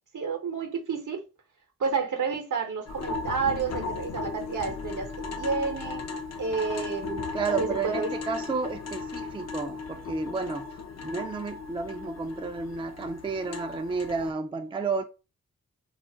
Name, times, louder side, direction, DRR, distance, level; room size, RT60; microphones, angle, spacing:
voice 1, 0.1-1.2 1.8-5.1 5.4-6.0 6.4-8.1, right 5 dB, 65° right, 0.9 m, -30 dB
sound 1, 2.9-14.3, left 4 dB, 55° left, 0.5 m, -36 dB
voice 2, 7.3-10.7 11.0-15.0, right 4 dB, 15° right, 0.4 m, -31 dB
2.5 x 2.1 x 3.8 m
cardioid pair, 45°, 33 cm